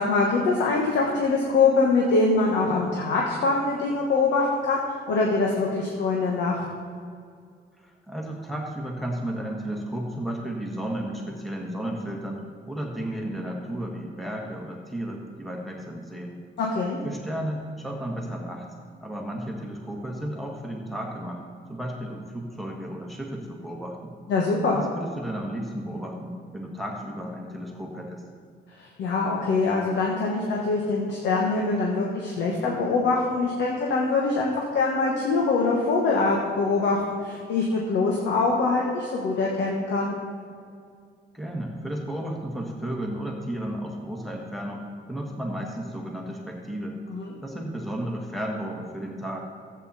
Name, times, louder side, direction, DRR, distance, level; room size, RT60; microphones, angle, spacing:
voice 1, 0.0-6.6 16.6-17.0 24.3-24.8 28.8-40.1 47.1-47.3, left 3 dB, 85° left, -1 dB, 1.5 m, -24 dB
voice 2, 7.8-12.4 12.7-16.4 17.0-18.7 19.0-21.4 21.7-24.1 24.7-28.2 41.3-44.8 45.1-47.0 47.4-49.5, right 1 dB, ahead, -1 dB, 1.6 m, -33 dB
14.0 x 8.3 x 4.2 m, 2.2 s
cardioid pair, 145°, 18 cm